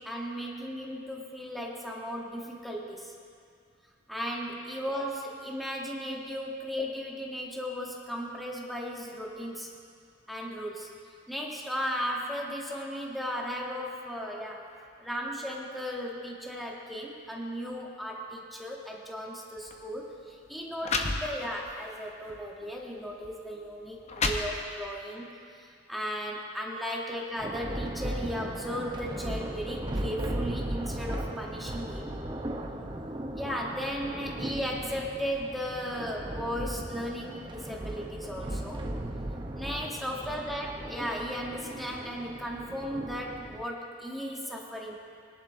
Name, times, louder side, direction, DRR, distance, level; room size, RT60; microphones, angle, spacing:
voice 1, 0.0-3.1 4.1-9.7 10.3-10.9 11.3-14.7 15.0-24.0 24.2-32.2 33.3-38.9 39.5-45.0, equal, ahead, -2 dB, 1.0 m, -36 dB
sound 1, 19.6-19.8 20.5-20.6 20.8-21.7 22.3-22.5 23.2-23.3 23.8-25.0, left 3 dB, 35° left, 0.7 m, -31 dB
Thunder, 27.4-43.6, right 1 dB, 25° right, 0.7 m, -37 dB
20.0 x 11.0 x 2.6 m, 2.3 s
head